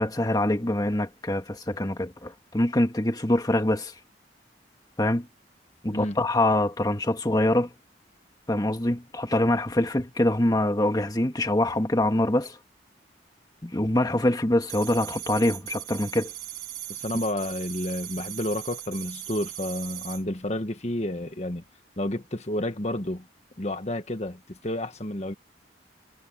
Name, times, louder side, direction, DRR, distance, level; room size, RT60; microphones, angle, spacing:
voice 1, 0.0-3.9 5.0-5.2 5.8-7.7 8.5-12.6 13.6-16.3, left 1 dB, 20° left, 1.5 m, -24 dB
sound 1, 14.7-20.2, right 14 dB, 60° right, 4.2 m, -39 dB
voice 2, 16.9-21.6 22.0-23.3 23.6-25.3, left 1 dB, 40° left, 1.5 m, -30 dB
head